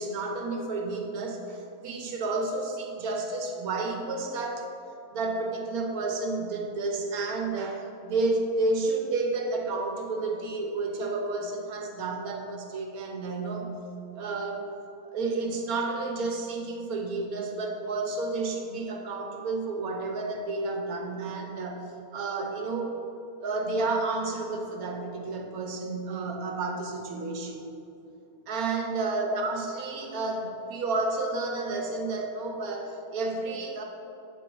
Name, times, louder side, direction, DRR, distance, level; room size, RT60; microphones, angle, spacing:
voice 1, 0.0-4.7 5.1-13.7 14.2-14.7 15.0-21.9 22.1-22.9 23.4-27.7 28.5-33.8, right 3 dB, 70° right, 2 dB, 1.3 m, -31 dB
8.1 x 4.4 x 4.5 m, 2.8 s
omnidirectional pair, 1.6 m